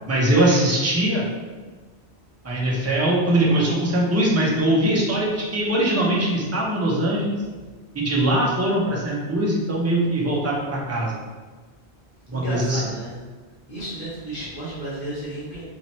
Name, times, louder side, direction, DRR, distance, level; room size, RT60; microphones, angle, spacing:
voice 1, 0.1-1.3 2.4-7.4 7.9-11.1 12.3-12.8, right 1 dB, 15° right, -4 dB, 0.6 m, -21 dB
voice 2, 12.3-13.2 13.7-15.6, right 1 dB, 50° left, -9 dB, 1.3 m, -33 dB
4.2 x 2.8 x 3.1 m, 1.4 s
omnidirectional pair, 1.1 m